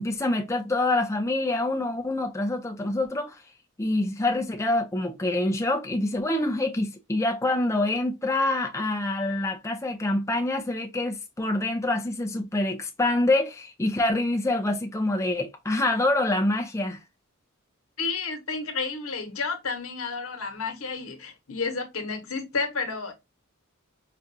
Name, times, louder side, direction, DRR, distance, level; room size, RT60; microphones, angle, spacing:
voice 1, 0.0-3.4 3.8-17.0, left 2 dB, 15° left, 0.4 m, -26 dB
voice 2, 18.0-23.1, left 4 dB, 85° left, 1.1 m, -31 dB
5.0 x 2.3 x 2.6 m
head